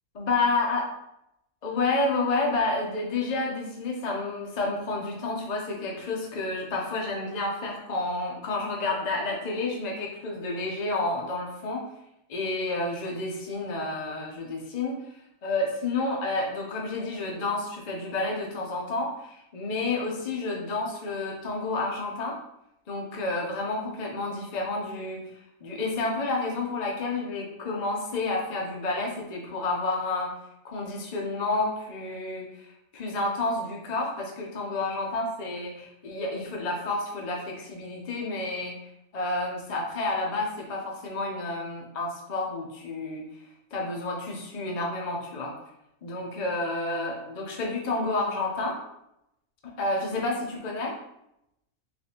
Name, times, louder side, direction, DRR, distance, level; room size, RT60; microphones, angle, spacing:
voice 1, 0.2-0.8 1.6-11.8 12.3-15.0 15.4-22.4 22.9-25.2 25.6-30.3 30.6-32.7 32.9-38.8 39.1-43.2 43.7-45.5 46.0-48.8 49.6-50.9, left 2 dB, 50° left, -1 dB, 0.5 m, -30 dB
4.2 x 3.2 x 2.8 m, 0.82 s
omnidirectional pair, 1.7 m